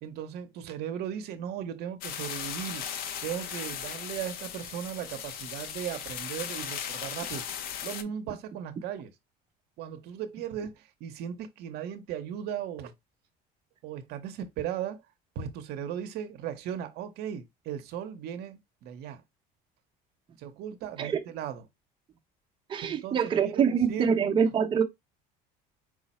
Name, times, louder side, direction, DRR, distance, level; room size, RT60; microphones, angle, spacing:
voice 1, 0.0-2.8 3.2-7.4 7.8-9.1 9.8-12.9 13.8-15.0 15.3-19.2 20.4-21.6 22.8-24.2, right 9 dB, 60° right, 0.7 m, -37 dB
sound 1, 2.0-8.0, left 8 dB, 55° left, 0.6 m, -37 dB
voice 2, 22.7-24.8, right 7 dB, 25° right, 0.6 m, -25 dB
4.8 x 2.0 x 4.1 m
cardioid pair, 130°, 18 cm